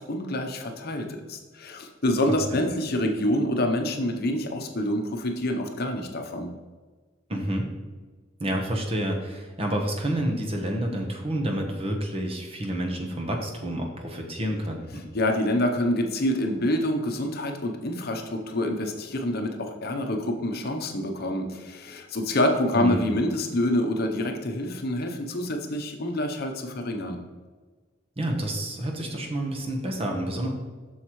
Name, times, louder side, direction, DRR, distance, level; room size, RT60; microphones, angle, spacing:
voice 1, 0.0-6.5 15.1-27.2, left 1 dB, 50° left, 4 dB, 0.8 m, -27 dB
voice 2, 7.3-7.7 8.4-15.0 22.7-23.1 28.2-30.5, right 1 dB, 30° right, 2 dB, 1.1 m, -29 dB
7.7 x 6.4 x 3.1 m, 1.3 s
head